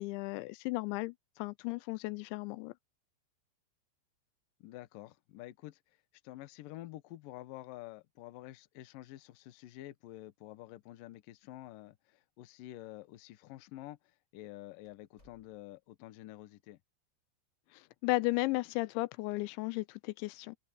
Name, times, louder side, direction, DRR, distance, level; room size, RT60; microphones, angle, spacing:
voice 1, 0.0-2.7 17.7-20.6, left 21 dB, 85° left, 2.9 m, -35 dB
voice 2, 4.6-6.0 6.2-16.8, left 15 dB, 70° left, 2.2 m, -49 dB
sound 1, 10.8-11.6 11.9-12.0 12.7-12.8 13.6-13.8 14.2-14.3 14.8-16.0, left 1 dB, 15° left, 7.2 m, -70 dB
omnidirectional pair, 5.3 m